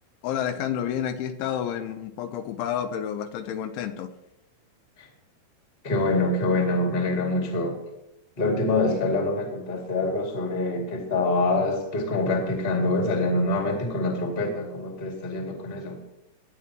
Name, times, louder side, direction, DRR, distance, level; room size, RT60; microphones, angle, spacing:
voice 1, 0.2-4.1, left 9 dB, 80° left, 7 dB, 3.1 m, -30 dB
voice 2, 5.8-7.8 8.4-16.0, left 2 dB, 20° left, 0 dB, 1.5 m, -25 dB
20.5 x 9.7 x 3.1 m, 0.90 s
omnidirectional pair, 5.6 m